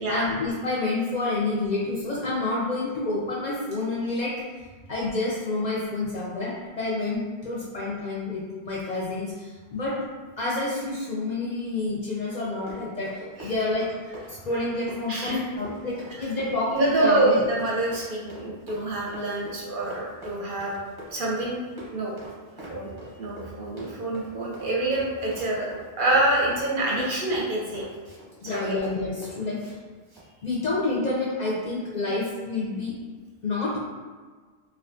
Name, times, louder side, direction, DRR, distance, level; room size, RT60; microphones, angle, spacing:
voice 1, 0.0-4.4 4.9-10.0 10.4-13.9 14.3-17.4 28.4-29.6 30.4-32.9 33.4-33.8, left 2 dB, 55° left, -6 dB, 0.5 m, -28 dB
Run, 12.4-29.8 30.0-30.3, equal, 25° right, 0.6 m, -44 dB
voice 2, 15.1-15.4 16.2-16.3 16.7-20.8 21.1-21.6 21.9-22.1 22.6-22.9 23.2-25.7 26.0-27.8 28.4-28.8 32.0-32.1, right 2 dB, 60° right, -4 dB, 0.6 m, -26 dB
2.5 x 2.3 x 2.4 m, 1.4 s
omnidirectional pair, 1.1 m